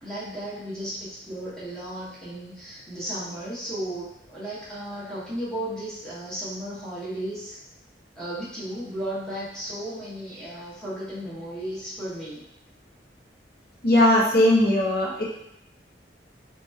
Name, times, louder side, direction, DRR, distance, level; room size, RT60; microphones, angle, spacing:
voice 1, 0.0-7.6 8.2-12.4, right 1 dB, 5° left, -9 dB, 0.7 m, -34 dB
voice 2, 13.8-15.2, left 1 dB, 55° left, -3 dB, 0.7 m, -19 dB
2.9 x 2.2 x 3.1 m, 0.79 s
head